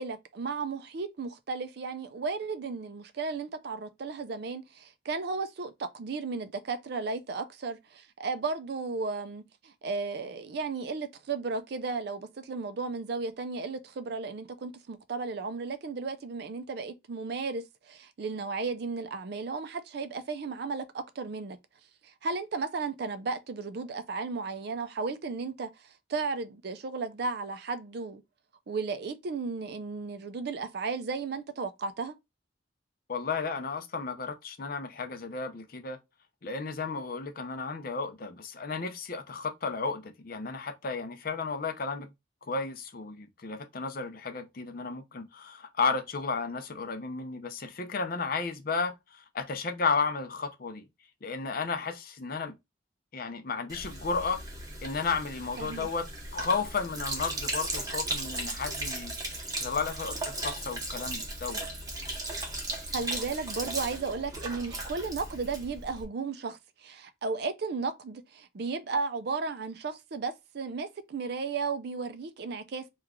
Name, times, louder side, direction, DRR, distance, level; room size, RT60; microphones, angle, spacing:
voice 1, 0.0-21.6 22.2-28.2 28.7-32.1 55.6-55.9 62.9-72.9, right 4 dB, 55° right, 0.4 m, -34 dB
voice 2, 33.1-36.0 36.4-42.1 42.5-50.9 51.2-52.5 53.1-54.4 54.8-56.0 56.3-59.1 59.6-61.7, left 4 dB, 50° left, 0.5 m, -33 dB
Sink (filling or washing), 53.7-66.0, right 2 dB, 20° right, 0.7 m, -36 dB
3.0 x 2.4 x 3.5 m
head